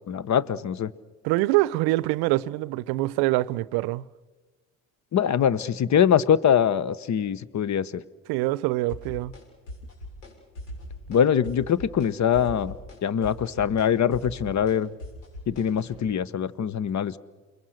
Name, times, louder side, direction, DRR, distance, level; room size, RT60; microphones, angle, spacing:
voice 1, 0.1-0.9 5.1-7.9 11.1-12.7 13.0-14.9 15.5-17.2, left 8 dB, 45° left, 1.1 m, -23 dB
voice 2, 1.2-4.0 8.3-9.3, right 19 dB, 75° right, 0.7 m, -24 dB
sound 1, 8.9-9.4 9.7-10.3 10.6-11.2 11.4-12.1 12.3-16.0, left 1 dB, 85° left, 7.4 m, -39 dB
29.0 x 21.5 x 6.6 m
hypercardioid pair, 60°, 38 cm